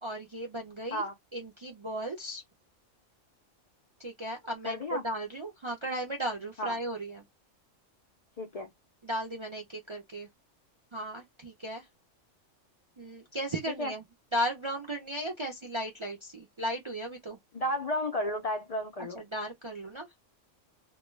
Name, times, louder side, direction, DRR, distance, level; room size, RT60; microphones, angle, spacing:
voice 1, 0.0-1.0 1.3-2.4 4.0-7.3 9.0-10.3 10.9-11.9 13.0-14.1 14.3-17.4 19.1-20.2, right 1 dB, 50° right, 0.3 m, -36 dB
voice 2, 4.7-5.0 6.6-6.8 8.4-8.7 13.8-13.9 17.5-19.2, left 1 dB, 75° left, 0.3 m, -32 dB
2.2 x 2.2 x 3.1 m
omnidirectional pair, 1.3 m